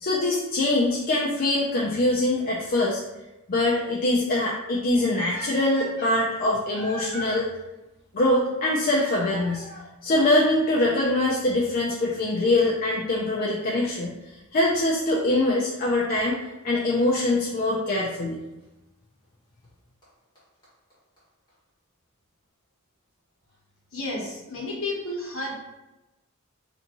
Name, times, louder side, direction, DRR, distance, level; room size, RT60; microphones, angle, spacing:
voice 1, 0.0-3.0 3.5-7.5 8.1-9.6 10.0-14.1 14.5-16.4 16.6-18.4, left 2 dB, 40° left, -4 dB, 0.4 m, -23 dB
sound 1, 5.1-7.4 8.8-9.9 10.8-10.9 11.6-11.7 11.9-12.0 13.9-14.1 17.0-17.1 18.1-18.2 19.6-19.7 20.0-20.1 20.3-20.4 20.6-20.7 20.9-21.0 21.2-21.3 21.5-21.6, right 1 dB, 20° left, 1.5 m, -38 dB
voice 2, 23.9-25.7, left 2 dB, 65° left, -3 dB, 1.1 m, -32 dB
3.4 x 2.6 x 2.9 m, 1.0 s
head